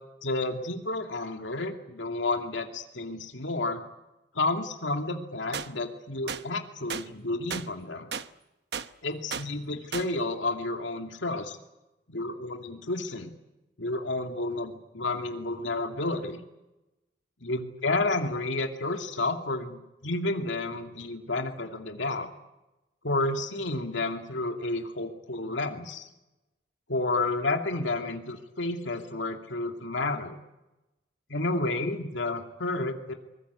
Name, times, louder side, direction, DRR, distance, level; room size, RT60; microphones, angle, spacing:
voice 1, 0.2-3.8 4.3-8.1 9.0-11.6 12.1-13.3 13.8-16.4 17.4-22.3 23.0-26.1 26.9-30.4 31.3-33.1, left 2 dB, 85° left, 4 dB, 2.5 m, -31 dB
sound 1, 5.5-5.7 6.3-6.4 6.9-7.1 7.5-7.7 8.1-8.3 8.7-8.9 9.3-9.5 9.9-10.1, right 6 dB, 65° right, 1.0 m, -33 dB
24.5 x 22.0 x 8.3 m, 0.97 s
head